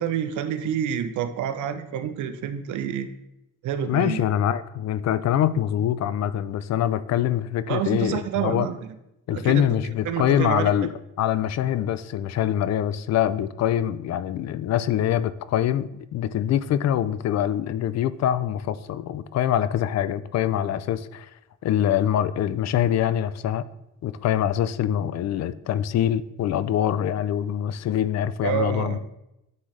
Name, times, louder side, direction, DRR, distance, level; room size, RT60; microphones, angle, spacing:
voice 1, 0.0-3.1 3.6-4.2 7.7-9.0 9.3-10.7 28.4-29.0, right 9 dB, 75° right, 9 dB, 0.7 m, -28 dB
voice 2, 3.9-8.7 9.3-10.9 11.2-21.3 21.6-23.7 24.0-29.0, left 10 dB, 60° left, 15 dB, 0.4 m, -24 dB
9.4 x 3.9 x 3.2 m, 0.87 s
cardioid pair, 90°, 30 cm